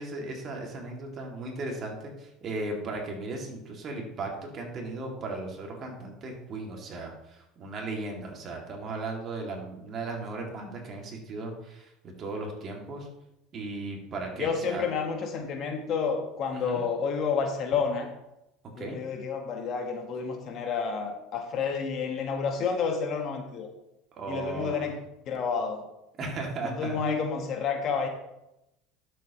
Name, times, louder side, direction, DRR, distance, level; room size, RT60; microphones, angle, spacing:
voice 1, 0.0-13.1 13.5-14.9 16.5-16.8 18.8-19.0 24.1-24.9 26.2-27.0, right 2 dB, 40° right, 1 dB, 2.3 m, -36 dB
voice 2, 14.4-18.1 18.8-23.7 24.3-25.0 25.3-25.8 26.6-28.1, left 5 dB, 50° left, 4 dB, 1.5 m, -30 dB
12.0 x 7.0 x 3.0 m, 0.88 s
supercardioid pair, 115°, 0 cm